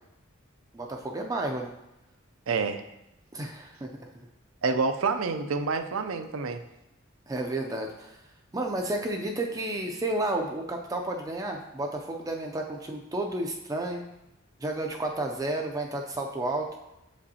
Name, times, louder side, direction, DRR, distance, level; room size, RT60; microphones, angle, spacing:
voice 1, 0.7-1.7 3.3-4.3 7.3-8.2 8.5-14.0 14.6-16.7, right 2 dB, 15° right, 2 dB, 0.4 m, -31 dB
voice 2, 2.5-2.8 4.6-6.6, right 4 dB, 80° right, 8 dB, 0.5 m, -28 dB
6.9 x 5.1 x 2.8 m, 0.90 s
head